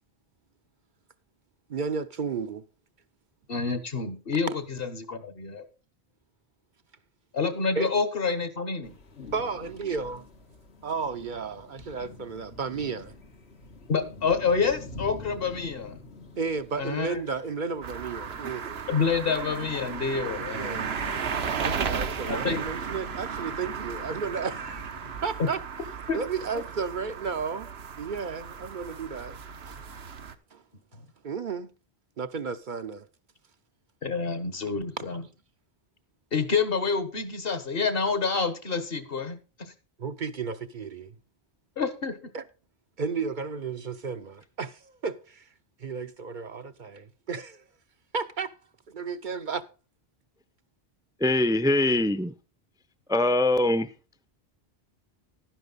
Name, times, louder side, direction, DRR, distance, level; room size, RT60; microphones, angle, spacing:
voice 1, 1.7-2.6 7.8-7.9 9.3-10.3 10.8-13.2 16.3-18.8 20.5-20.9 21.6-25.6 26.1-27.7 28.0-29.4 29.6-29.8 30.5-30.6 31.2-31.7 32.2-33.0 35.0-35.1 40.0-41.1 42.3-42.4 43.0-45.5 45.8-47.6 48.1-48.5 48.9-49.6, right 5 dB, 55° right, 0.8 m, -33 dB
voice 2, 3.5-5.6 7.3-8.9 13.9-16.0 16.8-17.2 18.9-21.0 22.3-22.6 25.4-25.5 26.1-26.2 34.0-35.2 36.3-39.7 41.8-42.2, left 5 dB, 65° left, 1.5 m, -28 dB
sound 1, 8.8-25.2, left 2 dB, 85° left, 1.9 m, -47 dB
sound 2, 17.8-30.3, right 6 dB, 80° right, 1.2 m, -35 dB
voice 3, 51.2-52.3 53.1-53.9, left 1 dB, 5° right, 0.6 m, -22 dB
11.5 x 10.0 x 4.0 m
omnidirectional pair, 1.1 m